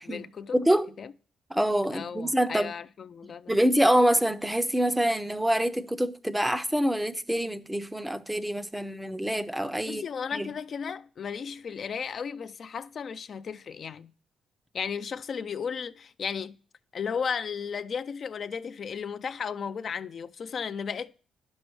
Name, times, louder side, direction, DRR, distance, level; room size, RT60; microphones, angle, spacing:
voice 1, 0.0-0.5 1.0-1.1 1.9-3.5 9.9-14.1 14.7-16.6 16.9-21.2, left 6 dB, 50° left, 0.3 m, -34 dB
voice 2, 0.5-0.9 1.5-2.7 3.5-10.0 10.3-10.5, right 1 dB, 5° right, 0.5 m, -26 dB
9.8 x 6.3 x 3.1 m
cardioid pair, 90°, 0 cm